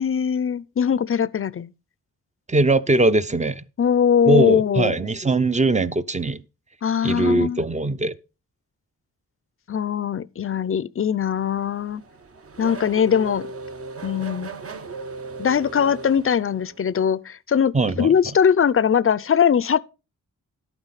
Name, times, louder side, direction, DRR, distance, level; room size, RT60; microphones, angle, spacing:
voice 1, 0.0-1.7 3.8-4.9 6.8-7.6 9.7-12.0 12.6-13.5 14.0-14.5 15.4-19.8, left 7 dB, 40° left, 0.5 m, -21 dB
voice 2, 2.5-3.6 4.3-6.4 7.0-8.1 17.7-18.1, right 2 dB, 20° right, 0.5 m, -21 dB
Race car auto racing / Accelerating revving vroom, 11.4-16.9, right 3 dB, 45° right, 0.9 m, -37 dB
11.5 x 8.9 x 4.1 m
wide cardioid pair, 90°, 34 cm